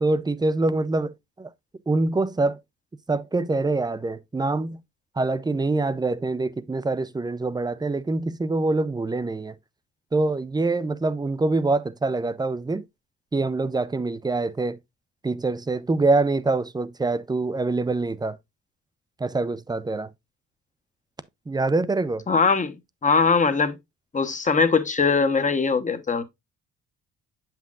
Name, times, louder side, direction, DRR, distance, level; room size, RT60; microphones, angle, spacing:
voice 1, 0.0-1.5 1.9-2.6 3.1-4.8 5.2-9.5 10.1-12.8 13.3-14.8 15.2-18.4 19.2-20.1 21.5-22.2, right 3 dB, 15° right, 0.5 m, -25 dB
voice 2, 22.3-22.8 23.0-23.8 24.1-26.2, left 4 dB, 25° left, 1.0 m, -21 dB
7.2 x 5.8 x 2.4 m
cardioid pair, 90°, 30 cm